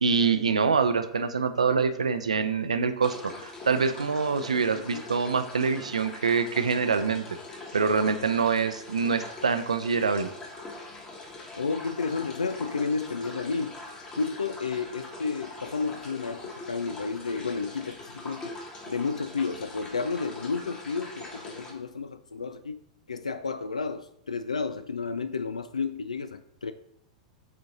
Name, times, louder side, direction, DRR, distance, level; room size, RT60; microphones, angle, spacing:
voice 1, 0.0-7.3 7.7-10.3, right 5 dB, 75° right, 0.6 m, -25 dB
sound 1, 3.0-21.7, left 2 dB, 20° left, 1.4 m, -43 dB
voice 2, 11.6-13.8 14.2-18.6 18.9-22.8 23.1-26.7, left 4 dB, 80° left, 0.3 m, -31 dB
8.5 x 3.8 x 4.0 m
figure-of-eight pair, 95°, 4 cm